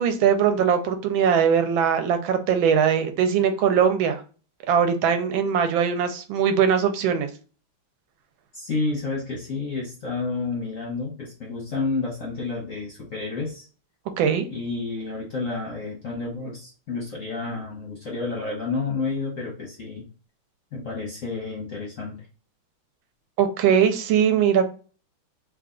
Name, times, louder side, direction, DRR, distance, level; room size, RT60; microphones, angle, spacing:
voice 1, 0.0-4.2 4.7-7.3 14.2-14.5 23.4-24.7, right 7 dB, 75° right, 8 dB, 1.3 m, -21 dB
voice 2, 8.5-13.7 14.5-20.1 20.7-22.2, left 3 dB, 60° left, -2 dB, 0.8 m, -30 dB
3.3 x 2.3 x 3.6 m, 0.37 s
omnidirectional pair, 2.3 m